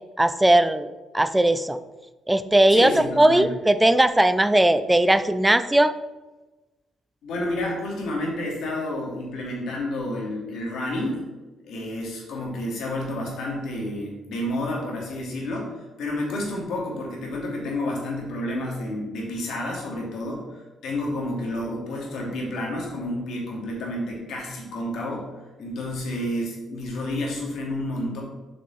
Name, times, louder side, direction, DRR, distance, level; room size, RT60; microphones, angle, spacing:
voice 1, 0.2-0.9 1.1-1.8 2.3-5.9, right 1 dB, 10° right, 12 dB, 0.5 m, -18 dB
voice 2, 2.7-3.5 7.2-11.2 11.6-25.3 25.6-28.2, left 1 dB, 75° left, -2 dB, 2.6 m, -30 dB
8.4 x 5.5 x 4.2 m, 1.1 s
cardioid pair, 90°, 0 cm